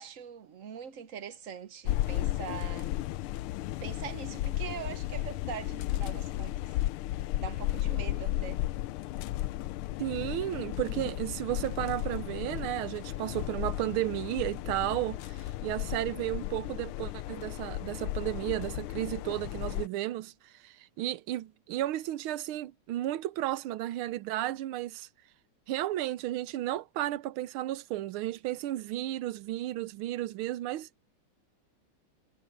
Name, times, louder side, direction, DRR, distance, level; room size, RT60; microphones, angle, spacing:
voice 1, 0.0-3.1 3.8-6.6 7.4-8.6, right 8 dB, 50° right, 1.0 m, -42 dB
sound 1, 1.9-19.9, left 15 dB, 80° left, 1.4 m, -34 dB
voice 2, 10.0-25.1 25.7-30.9, right 15 dB, 75° right, 1.5 m, -33 dB
omnidirectional pair, 2.4 m